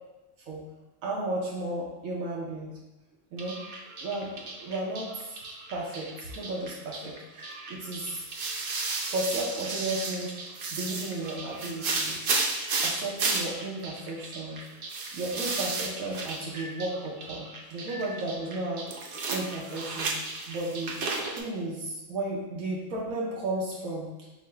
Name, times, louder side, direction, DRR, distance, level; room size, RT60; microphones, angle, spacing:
voice 1, 1.0-2.8 3.3-3.6 4.0-5.4 5.7-8.2 9.1-12.3 12.8-18.9 19.3-20.1 20.5-21.0 21.3-24.3, right 2 dB, 90° right, -3 dB, 1.1 m, -34 dB
sound 1, 3.4-21.4, right 3 dB, 60° right, 0.6 m, -34 dB
4.5 x 2.0 x 4.5 m, 1.0 s
omnidirectional pair, 1.4 m